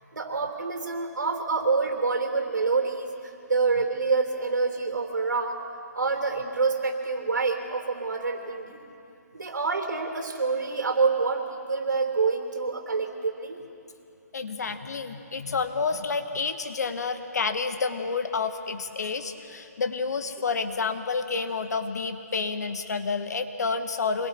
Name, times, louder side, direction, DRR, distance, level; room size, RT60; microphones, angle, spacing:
voice 1, 0.1-5.6 5.9-8.8 9.3-13.6, right 4 dB, 90° right, 4 dB, 3.3 m, -27 dB
voice 2, 14.3-24.3, left 4 dB, 65° left, 9 dB, 1.4 m, -29 dB
27.5 x 22.0 x 4.4 m, 2.6 s
hypercardioid pair, 170°, 10 cm